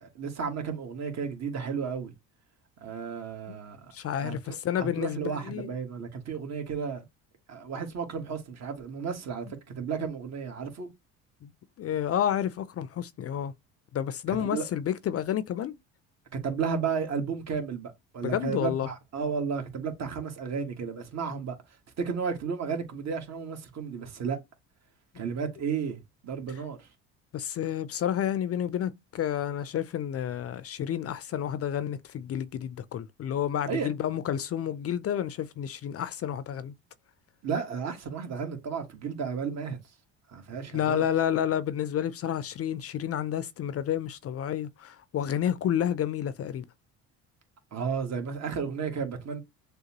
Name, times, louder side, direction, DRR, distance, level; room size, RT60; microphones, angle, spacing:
voice 1, 0.0-2.1 2.8-3.8 4.2-7.0 7.5-9.5 9.7-10.9 14.3-14.7 16.4-21.5 22.0-24.4 25.1-26.9 33.7-33.9 37.4-39.8 40.3-41.1 47.7-49.4, right 6 dB, 50° right, 1.7 m, -33 dB
voice 2, 3.9-5.7 11.4-11.5 11.8-13.5 13.9-15.7 18.2-18.9 27.3-36.7 40.7-46.7, left 10 dB, 40° left, 0.5 m, -30 dB
6.5 x 2.2 x 2.9 m
supercardioid pair, 75°, 35 cm